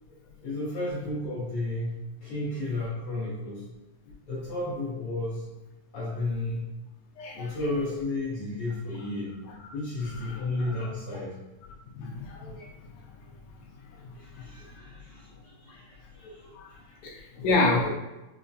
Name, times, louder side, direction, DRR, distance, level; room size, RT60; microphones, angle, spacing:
voice 1, 0.4-3.6 4.3-5.4 5.9-6.6 7.3-9.3 9.7-11.3 14.2-15.3 15.6-15.9 16.2-16.5 16.9-17.0, left 2 dB, 65° left, -7 dB, 1.5 m, -32 dB
voice 2, 7.2-7.5 10.2-10.9 12.0-12.7 16.6-16.7 17.0-17.9, left 3 dB, 80° left, 0 dB, 1.7 m, -28 dB
5.0 x 2.1 x 2.6 m, 1.0 s
omnidirectional pair, 3.5 m